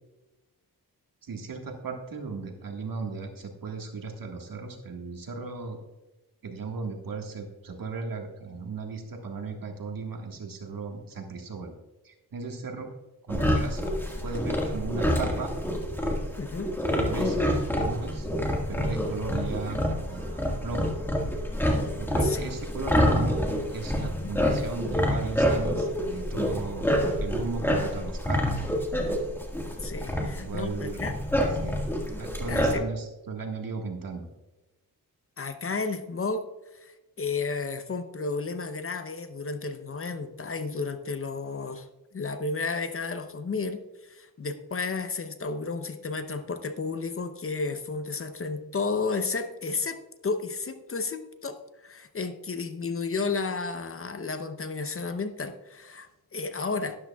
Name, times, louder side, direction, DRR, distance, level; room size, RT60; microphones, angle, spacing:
voice 1, 1.2-5.8 6.4-11.8 12.0-12.9 13.2-13.8 14.2-15.6 17.1-18.3 18.7-21.0 21.9-23.4 23.7-28.7 30.2-31.0 31.3-31.8 32.1-34.3, right 4 dB, 65° right, 3 dB, 1.6 m, -36 dB
sound 1, 13.3-32.8, equal, 5° left, 1.7 m, -27 dB
voice 2, 16.4-16.7 22.2-22.6 24.0-24.3 29.8-31.1 32.5-32.8 35.4-36.4 36.8-41.9 42.1-57.0, left 4 dB, 35° left, 9 dB, 0.7 m, -32 dB
12.0 x 11.0 x 2.3 m, 1.1 s
wide cardioid pair, 110°, 37 cm